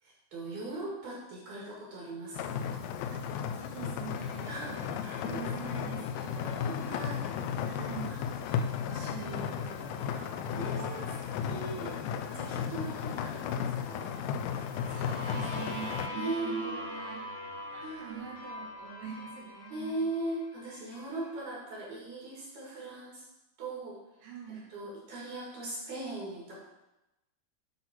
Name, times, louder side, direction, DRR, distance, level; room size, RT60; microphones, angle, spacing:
voice 1, 0.0-2.8 4.5-4.7 5.0-5.8 6.6-7.2 8.1-8.3 10.6-11.9 12.3-14.2 16.1-16.9 17.8-18.4 19.7-23.3 23.6-24.0 24.5-26.6, right 2 dB, 60° right, -4 dB, 3.1 m, -39 dB
sound 1, 2.3-16.1, left 7 dB, 90° left, 2.6 m, -34 dB
voice 2, 3.5-8.5 8.8-11.4 12.3-12.8 14.9-17.3 17.7-20.1 24.2-24.7, right 6 dB, 85° right, -2 dB, 4.4 m, -45 dB
sound 2, 4.0-21.4, left 5 dB, 65° left, 3.1 m, -57 dB
sound 3, 14.5-20.3, equal, 30° left, 1.6 m, -42 dB
9.6 x 4.1 x 5.8 m, 0.95 s
omnidirectional pair, 5.9 m